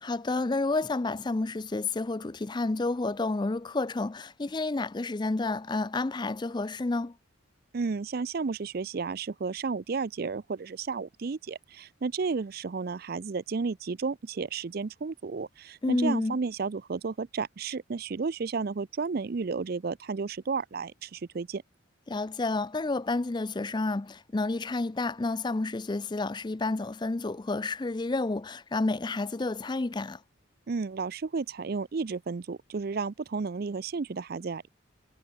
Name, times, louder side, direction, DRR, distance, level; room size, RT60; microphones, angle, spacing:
voice 1, 0.0-7.2 15.8-16.4 22.1-30.2, left 2 dB, 20° left, 0.4 m, -30 dB
voice 2, 7.7-21.6 30.7-34.7, right 4 dB, 50° right, 0.4 m, -32 dB
head